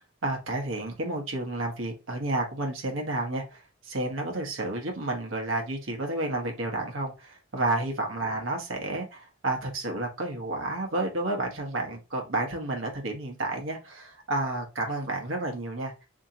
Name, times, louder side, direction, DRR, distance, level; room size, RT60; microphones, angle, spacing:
voice 1, 0.2-15.9, right 2 dB, 80° right, 2 dB, 1.0 m, -31 dB
3.7 x 2.8 x 2.8 m, 0.29 s
head